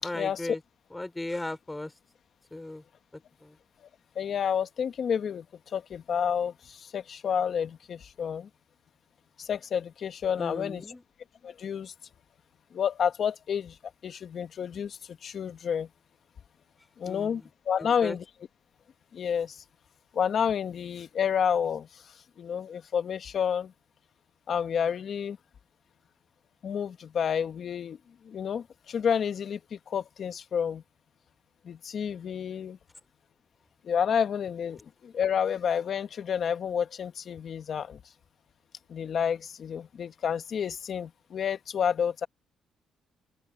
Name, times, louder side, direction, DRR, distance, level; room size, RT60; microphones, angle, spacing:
voice 1, 0.0-0.6 0.9-1.9 2.5-2.8 3.4-3.6 10.4-11.0 17.0-17.5 17.8-18.2, left 2 dB, 15° left, 4.6 m, -37 dB
voice 2, 4.1-5.4 5.7-8.5 9.4-10.9 11.4-11.9 12.7-13.8 14.0-15.9 17.0-18.2 19.1-19.6 20.1-23.7 24.5-25.4 26.6-28.0 28.2-30.8 31.6-32.8 33.8-38.0 38.9-42.3, left 7 dB, 55° left, 1.5 m, -30 dB
open air
cardioid pair, 90°, 0 cm